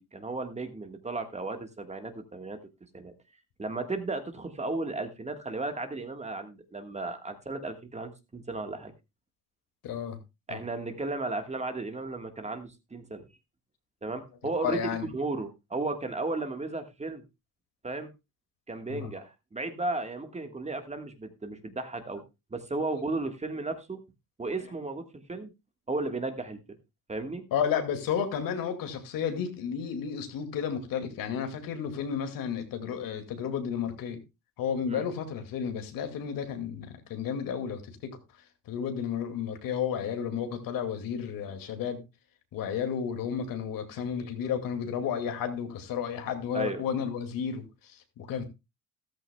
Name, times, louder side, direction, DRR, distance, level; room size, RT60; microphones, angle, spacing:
voice 1, 0.1-2.6 2.9-3.1 3.6-8.9 10.5-13.3 14.0-17.2 17.8-18.1 18.7-22.2 22.5-24.0 24.4-25.5 25.9-26.6 27.1-27.5 34.9-35.1 46.5-46.8, right 2 dB, 20° right, 1.5 m, -34 dB
voice 2, 9.8-10.2 10.5-10.6 14.6-15.1 18.9-19.1 27.5-34.2 34.6-38.2 38.7-42.0 42.5-48.4, left 7 dB, 70° left, 2.3 m, -32 dB
14.0 x 13.0 x 2.3 m
cardioid pair, 100°, 35 cm